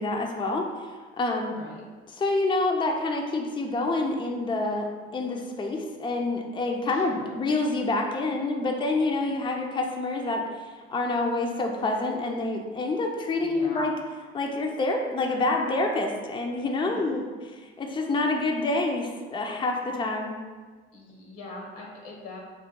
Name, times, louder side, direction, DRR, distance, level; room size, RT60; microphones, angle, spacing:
voice 1, 0.0-1.5 2.2-13.9 14.3-20.4, left 2 dB, 15° left, 2 dB, 0.5 m, -27 dB
voice 2, 1.4-1.8 6.9-7.3 13.3-13.8 16.9-17.1 20.9-22.4, left 2 dB, 75° left, -1 dB, 1.0 m, -43 dB
3.6 x 2.5 x 3.7 m, 1.4 s
hypercardioid pair, 60°, 29 cm